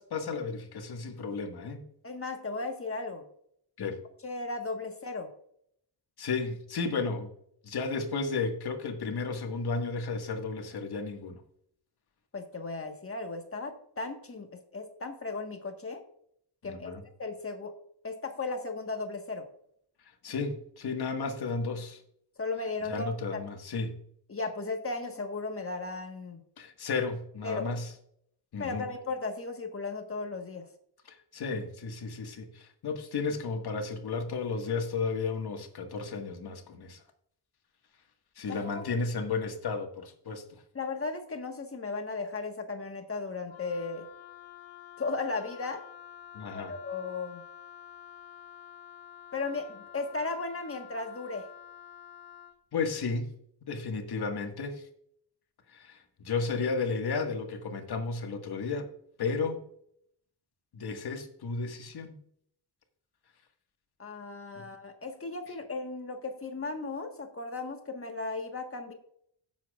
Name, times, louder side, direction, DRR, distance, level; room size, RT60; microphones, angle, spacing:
voice 1, 0.0-1.8 3.8-4.0 6.2-7.3 7.6-11.4 16.6-17.0 20.2-22.0 22.9-24.0 26.6-27.9 28.5-28.9 31.1-37.0 38.4-40.6 46.3-46.7 52.7-53.3 53.6-54.8 55.7-58.9 59.2-59.6 60.7-62.1 64.6-64.7, left 4 dB, 60° left, 4 dB, 1.8 m, -33 dB
voice 2, 2.0-3.3 3.8-3.9 4.2-5.3 12.3-16.0 16.6-16.9 17.2-17.7 18.0-19.5 22.4-23.4 24.3-26.4 27.4-27.7 28.6-30.7 38.5-38.9 40.7-44.0 45.0-45.8 46.5-47.4 49.3-51.5 64.0-68.9, left 3 dB, 30° left, 4 dB, 1.5 m, -36 dB
Wind instrument woodwind instrument, 43.5-52.6, left 9 dB, 90° left, 1.0 m, -49 dB
17.0 x 7.3 x 2.4 m, 0.68 s
wide cardioid pair, 120°, 42 cm